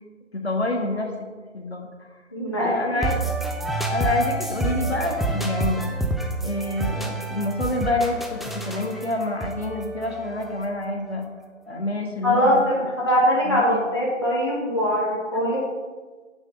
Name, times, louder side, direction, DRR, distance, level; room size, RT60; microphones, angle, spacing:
voice 1, 0.3-1.1 1.5-2.1 2.6-3.1 3.9-5.9 6.4-11.3 11.7-12.6 13.4-13.8, left 2 dB, 55° left, 2 dB, 1.7 m, -27 dB
voice 2, 2.3-3.0 12.2-15.6, equal, 20° left, -6 dB, 1.4 m, -22 dB
sound 1, 3.0-10.8, right 2 dB, ahead, 0.5 m, -28 dB
8.9 x 5.3 x 7.0 m, 1.4 s
figure-of-eight pair, 175°, 38 cm